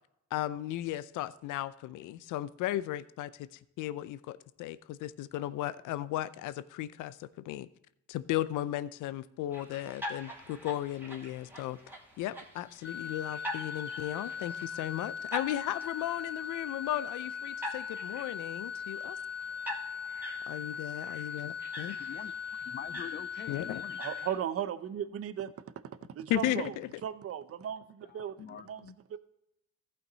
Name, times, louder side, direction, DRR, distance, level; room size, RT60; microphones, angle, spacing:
voice 1, 0.3-7.7 8.1-11.8 12.2-19.2 20.5-22.0 23.5-23.8 26.3-26.9, left 14 dB, 85° left, 17 dB, 0.5 m, -35 dB
sound 1, 9.5-24.4, equal, 5° right, 2.3 m, -45 dB
sound 2, 12.8-24.3, left 6 dB, 60° left, 1.2 m, -39 dB
voice 2, 21.9-22.3 22.7-24.0 28.1-29.2, left 9 dB, 35° left, 12 dB, 0.4 m, -45 dB
voice 3, 24.0-25.5 26.1-26.7 27.0-29.2, right 9 dB, 50° right, 13 dB, 0.7 m, -36 dB
14.5 x 5.8 x 3.9 m, 0.80 s
cardioid pair, 90°, 30 cm